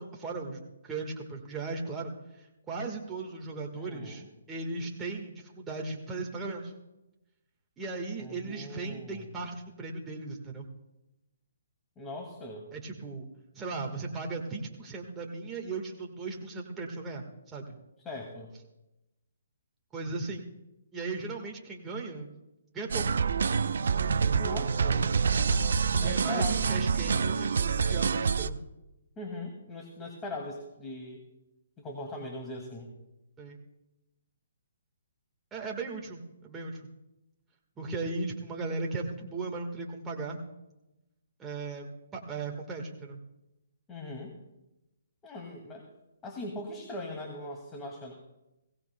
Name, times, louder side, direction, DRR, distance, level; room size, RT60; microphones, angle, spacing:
voice 1, 0.0-6.7 7.8-10.7 12.7-13.3 13.5-17.8 19.9-20.4 20.9-22.3 22.7-23.0 26.0-28.6 33.4-33.6 35.5-36.9 37.8-40.4 41.4-43.2, right 3 dB, 15° right, 0 dB, 1.5 m, -37 dB
voice 2, 3.8-4.3 8.2-9.3 12.0-12.7 18.0-18.5 24.4-25.0 26.0-26.7 26.9-27.5 29.2-31.2 31.8-32.9 43.9-44.3 45.2-45.9 46.2-48.1, left 2 dB, 15° left, 0 dB, 2.1 m, -40 dB
sound 1, 22.9-28.5, right 5 dB, 70° right, 0.6 m, -27 dB
22.5 x 17.5 x 2.2 m, 0.96 s
hypercardioid pair, 150°, 0 cm